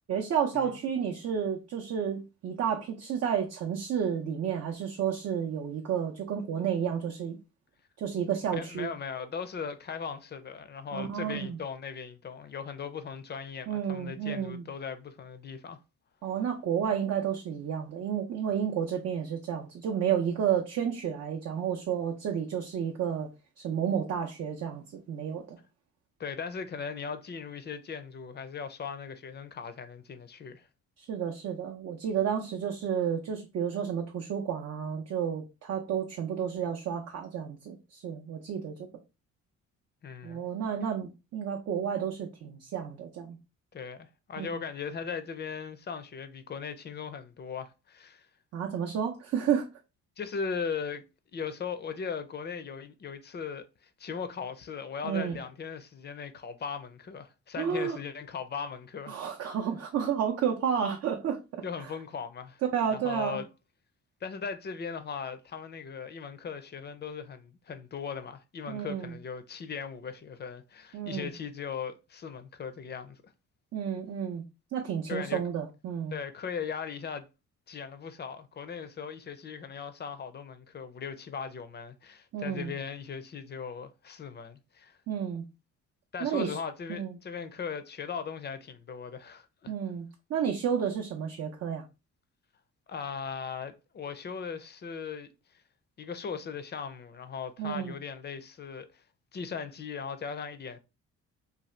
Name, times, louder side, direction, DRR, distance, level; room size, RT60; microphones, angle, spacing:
voice 1, 0.1-7.4 8.0-8.9 10.9-11.6 13.7-14.6 16.2-23.3 23.6-25.6 31.0-38.9 40.2-43.4 44.4-44.6 48.5-49.7 55.0-55.4 57.6-58.0 59.1-61.9 62.7-63.4 68.7-69.2 70.9-71.3 73.7-74.4 74.7-76.2 82.3-82.7 85.1-85.5 86.2-86.6 86.9-87.2 89.7-91.8 97.6-97.9, right 8 dB, 55° right, 0.5 m, -31 dB
voice 2, 8.5-15.8 26.2-30.7 40.0-40.4 43.7-48.3 50.2-51.0 51.3-59.2 61.6-62.6 62.9-63.5 64.2-73.2 75.1-75.4 76.1-77.3 77.7-85.0 86.1-89.7 92.9-95.3 96.0-99.0 99.3-100.8, left 6 dB, 35° left, 0.4 m, -38 dB
2.7 x 2.3 x 3.1 m
cardioid pair, 90°, 30 cm